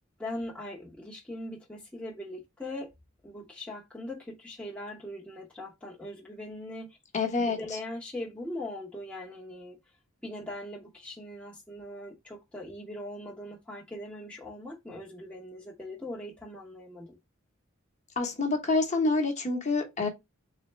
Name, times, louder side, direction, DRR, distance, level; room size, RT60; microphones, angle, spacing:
voice 1, 0.2-2.9 3.2-6.9 7.5-9.8 10.2-17.2, left 1 dB, 5° left, 0.7 m, -40 dB
voice 2, 7.1-7.8 18.2-20.1, left 3 dB, 35° left, 0.9 m, -27 dB
3.5 x 3.3 x 3.0 m
head